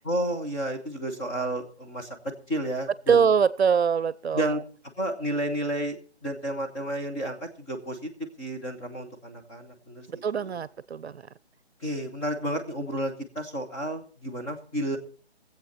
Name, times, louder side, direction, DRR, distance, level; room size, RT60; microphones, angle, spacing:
voice 1, 0.0-2.2 2.5-3.3 4.3-4.6 5.0-8.1 8.4-10.5 11.8-15.0, right 1 dB, 10° left, -1 dB, 1.3 m, -31 dB
voice 2, 3.1-4.6 10.1-11.2, right 6 dB, 70° right, 19 dB, 0.7 m, -23 dB
22.0 x 8.0 x 4.2 m, 0.41 s
hypercardioid pair, 165°, 33 cm